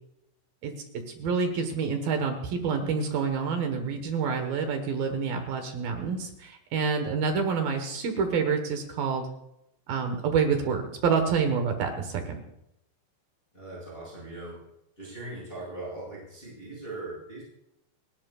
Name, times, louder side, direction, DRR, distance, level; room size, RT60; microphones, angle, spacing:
voice 1, 0.6-9.3 9.9-12.4, right 5 dB, 65° right, 5 dB, 2.5 m, -28 dB
voice 2, 13.5-14.7 15.0-17.4, right 2 dB, 10° left, -7 dB, 6.2 m, -40 dB
30.0 x 11.5 x 2.4 m, 0.82 s
omnidirectional pair, 5.4 m